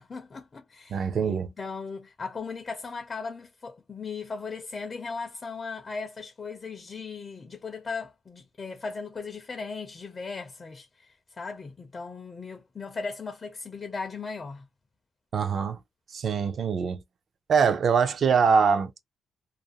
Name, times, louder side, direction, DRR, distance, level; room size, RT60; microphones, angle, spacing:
voice 1, 0.0-14.7, left 4 dB, 30° left, 0.4 m, -37 dB
voice 2, 0.9-1.5 15.3-15.8 16.1-17.0 17.5-19.0, right 6 dB, 45° right, 0.4 m, -23 dB
2.5 x 2.0 x 2.7 m
cardioid pair, 130°, 0 cm